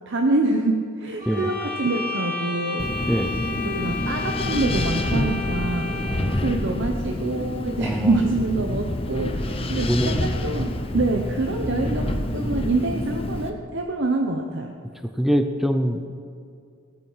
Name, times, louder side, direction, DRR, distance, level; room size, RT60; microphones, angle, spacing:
voice 1, 0.1-3.1 3.6-14.7, right 2 dB, 55° right, 3 dB, 0.9 m, -26 dB
sound 1, 1.2-6.5, left 3 dB, 35° right, 2.8 m, -32 dB
Wind, 2.8-13.5, left 1 dB, 25° left, 0.8 m, -27 dB
voice 2, 6.0-6.4 7.8-8.1 9.9-10.2 15.2-16.1, equal, ahead, 7 dB, 0.5 m, -24 dB
17.5 x 9.1 x 5.7 m, 2.4 s
head